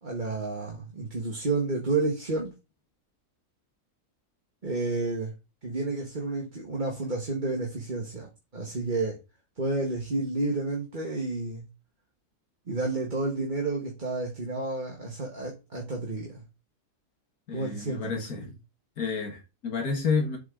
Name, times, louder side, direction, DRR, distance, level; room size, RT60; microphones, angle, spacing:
voice 1, 0.0-2.5 4.6-5.3 5.6-9.2 9.6-11.7 12.7-16.4 17.5-18.5, right 3 dB, 35° right, 1.7 m, -30 dB
voice 2, 17.5-18.5 19.0-20.4, left 5 dB, 85° left, 2.2 m, -30 dB
7.6 x 5.3 x 3.9 m
omnidirectional pair, 1.5 m